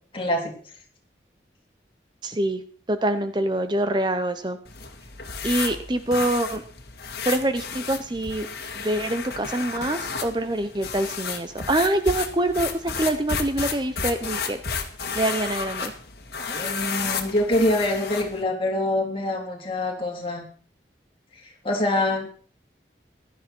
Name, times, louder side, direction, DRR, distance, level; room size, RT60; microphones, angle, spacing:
voice 1, 0.1-0.5 16.5-20.5 21.4-22.3, left 1 dB, 30° left, 0 dB, 3.6 m, -25 dB
voice 2, 2.2-2.6 2.9-4.6 5.4-6.6 7.2-8.5 8.8-14.6 15.1-15.9, right 1 dB, 25° right, 9 dB, 0.8 m, -25 dB
sound 1, 4.6-18.4, left 5 dB, 60° left, 2.0 m, -32 dB
16.0 x 12.0 x 4.5 m, 0.43 s
head